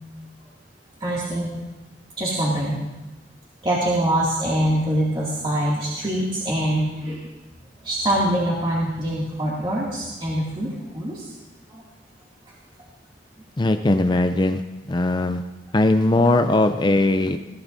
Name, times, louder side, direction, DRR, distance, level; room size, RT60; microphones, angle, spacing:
voice 1, 1.0-1.5 2.2-2.8 3.6-7.3 7.8-11.3 11.7-11.8 17.2-17.3, right 1 dB, 30° right, -6 dB, 2.4 m, -24 dB
voice 2, 13.6-14.6 14.9-15.4 15.7-17.4, left 2 dB, 25° left, 8 dB, 0.5 m, -19 dB
20.5 x 15.0 x 2.7 m, 1.0 s
head